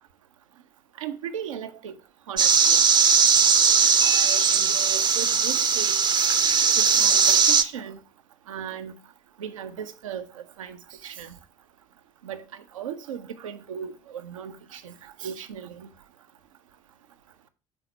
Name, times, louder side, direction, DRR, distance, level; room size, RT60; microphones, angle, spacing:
voice 1, 1.0-2.0 2.3-2.8 4.0-6.0 6.8-8.0 8.5-8.9 9.4-11.4 12.2-15.9, right 8 dB, 80° right, 0.5 m, -37 dB
sound 1, 2.4-7.6, right 6 dB, 25° right, 0.5 m, -19 dB
6.7 x 4.0 x 4.2 m
figure-of-eight pair, 50°, 17 cm